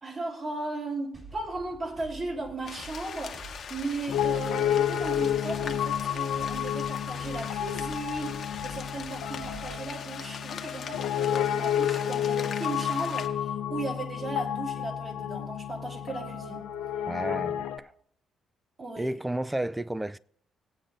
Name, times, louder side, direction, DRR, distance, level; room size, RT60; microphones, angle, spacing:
voice 1, 0.0-16.6 18.8-19.1, right 2 dB, 40° right, 3.0 m, -36 dB
sound 1, 1.1-9.9, right 3 dB, 25° right, 3.1 m, -48 dB
sound 2, 2.7-13.3, left 7 dB, 60° left, 0.9 m, -41 dB
Piano, 4.1-17.8, left 9 dB, 85° left, 0.7 m, -30 dB
voice 2, 17.1-17.9 19.0-20.2, right 1 dB, 10° right, 0.3 m, -32 dB
19.5 x 8.6 x 2.5 m
cardioid pair, 90°, 0 cm